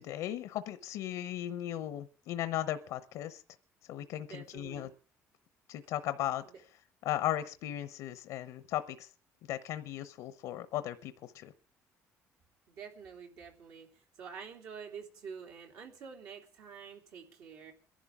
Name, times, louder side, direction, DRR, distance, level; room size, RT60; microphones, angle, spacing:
voice 1, 0.0-3.4 3.9-4.9 5.7-6.4 7.0-9.1 9.5-11.5, left 12 dB, 80° left, 12 dB, 0.8 m, -36 dB
voice 2, 4.2-4.9 6.4-6.6 12.7-17.7, right 6 dB, 75° right, 1 dB, 3.3 m, -48 dB
29.0 x 11.5 x 3.7 m, 0.38 s
cardioid pair, 135°, 6 cm